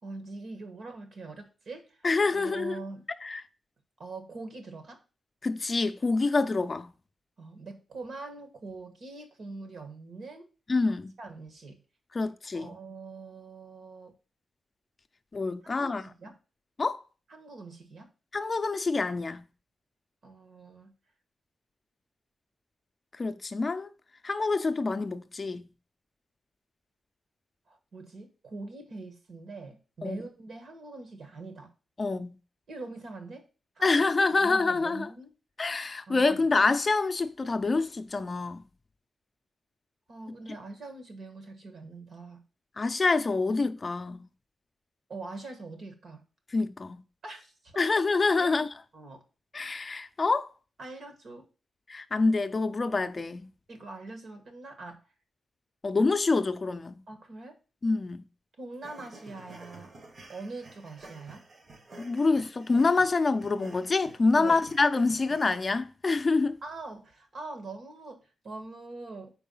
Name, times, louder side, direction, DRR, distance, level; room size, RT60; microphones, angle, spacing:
voice 1, 0.0-2.0 2.3-3.0 4.0-5.0 7.4-10.5 11.2-11.8 12.5-14.1 15.8-16.3 17.3-18.1 20.2-20.9 27.7-31.7 32.7-33.5 33.8-34.0 34.4-35.3 36.1-36.4 40.1-42.5 45.1-46.2 47.2-47.7 48.4-48.6 48.9-49.2 50.8-51.4 53.7-55.0 57.1-57.6 58.6-59.9 60.3-61.4 64.3-64.6 66.6-69.3, right 3 dB, 65° right, 1.5 m, -43 dB
voice 2, 2.0-2.8 3.2-3.4 5.4-6.9 10.7-11.1 12.1-12.7 15.3-16.0 16.8-17.0 18.3-19.4 23.2-23.9 24.2-25.7 30.0-30.2 32.0-32.3 33.8-35.1 35.6-38.6 42.8-44.3 46.5-47.0 47.8-48.7 49.5-50.5 51.9-53.5 55.8-57.0 57.8-58.2 62.0-66.6, left 3 dB, 35° left, 0.5 m, -26 dB
sound 1, 58.8-65.6, right 2 dB, 45° right, 1.0 m, -51 dB
4.7 x 4.6 x 5.5 m
wide cardioid pair, 130°, 0 cm